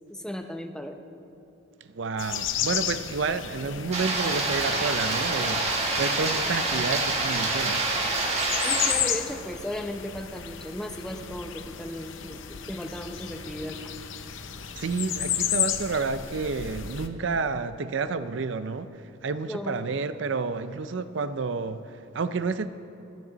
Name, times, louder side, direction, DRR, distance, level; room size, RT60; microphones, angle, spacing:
voice 1, 0.1-1.0 8.6-13.9 19.5-19.8, left 1 dB, 5° left, 0.7 m, -36 dB
voice 2, 1.9-7.8 14.8-18.9 19.2-22.7, right 4 dB, 65° right, 0.5 m, -30 dB
sound 1, 2.2-17.1, left 9 dB, 70° left, 0.7 m, -33 dB
sound 2, 3.9-8.9, right 2 dB, 35° right, 1.7 m, -26 dB
26.5 x 8.9 x 4.0 m
head